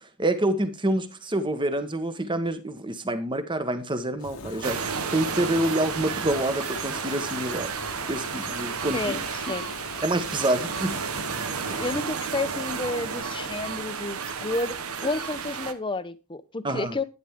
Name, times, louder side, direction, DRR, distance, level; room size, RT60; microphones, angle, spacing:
voice 1, 0.2-4.8 5.1-7.7 8.1-9.2 9.5-9.6 10.0-11.0 11.7-11.8 16.6-16.9, right 1 dB, 20° right, 1.3 m, -27 dB
Fire, 4.2-12.0, left 3 dB, 80° left, 1.4 m, -41 dB
sound 1, 4.6-15.7, right 6 dB, 80° right, 1.1 m, -32 dB
voice 2, 8.9-9.7 11.7-14.7 15.0-17.0, left 2 dB, 25° left, 0.8 m, -31 dB
11.0 x 10.0 x 3.7 m
head